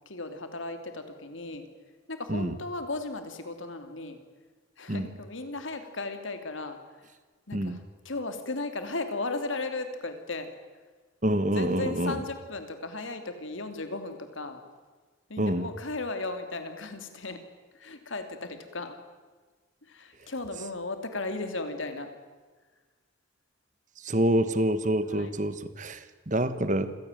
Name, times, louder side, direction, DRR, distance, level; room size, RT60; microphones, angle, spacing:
voice 1, 0.1-1.7 2.1-4.2 4.8-7.1 7.5-10.5 11.5-14.6 15.3-17.4 17.7-19.0 19.8-22.1 25.1-25.3, left 2 dB, 80° left, 8 dB, 2.8 m, -36 dB
voice 2, 11.2-12.2 15.4-15.7 24.0-26.9, right 1 dB, 40° right, 13 dB, 1.3 m, -27 dB
27.0 x 16.5 x 9.1 m, 1.4 s
head